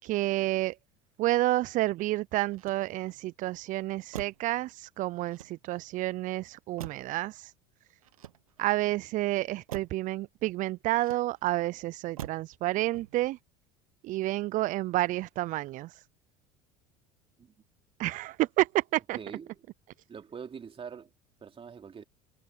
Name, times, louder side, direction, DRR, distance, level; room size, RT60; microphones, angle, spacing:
voice 1, 0.0-0.8 1.2-7.5 8.6-13.4 14.0-16.0 18.0-19.2, right 17 dB, 45° right, 0.5 m, -30 dB
Motor vehicle (road), 2.5-3.3 4.1-4.6 5.2-5.9 6.8-7.2 8.0-8.8 9.7-10.1 11.0-11.6 12.2-12.6 12.9-13.4, right 11 dB, 85° right, 1.3 m, -45 dB
voice 2, 19.1-19.6 20.1-21.1 21.4-22.0, right 6 dB, 30° right, 3.2 m, -44 dB
hypercardioid pair, 75°, 18 cm